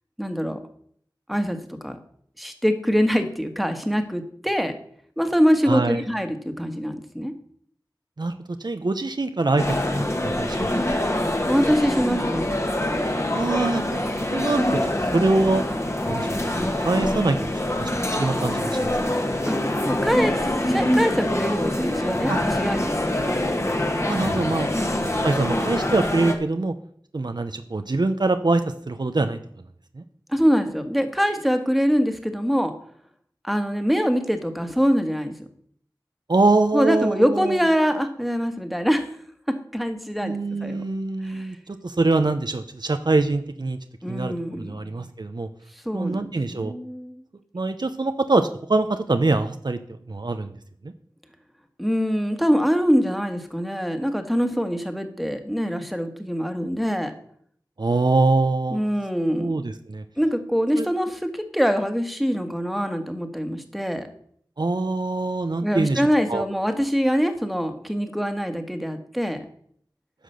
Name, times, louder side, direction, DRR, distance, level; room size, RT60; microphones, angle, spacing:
voice 1, 0.2-0.6 1.3-2.0 2.4-4.7 5.2-7.3 11.4-12.5 19.5-19.6 19.8-23.3 24.7-24.9 30.3-32.7 33.4-35.3 36.7-39.1 39.7-40.3 40.6-40.8 41.2-41.5 44.0-45.1 45.8-47.2 51.8-57.1 58.7-59.6 60.2-64.1 65.6-69.4, equal, ahead, 7 dB, 1.5 m, -24 dB
voice 2, 5.7-6.0 8.2-8.3 8.6-9.8 10.2-11.0 13.3-15.6 16.0-17.5 17.8-19.2 22.3-22.4 24.0-24.7 25.2-26.7 27.1-29.4 29.9-30.0 36.3-37.6 40.2-43.8 44.1-45.5 45.9-46.7 47.5-50.5 50.8-50.9 57.8-58.9 59.2-60.0 60.8-60.9 64.6-66.5, right 3 dB, 65° right, 8 dB, 0.7 m, -24 dB
sound 1, 9.6-26.3, left 1 dB, 35° left, 1.5 m, -25 dB
10.0 x 5.9 x 6.8 m, 0.62 s
wide cardioid pair, 50°, 8 cm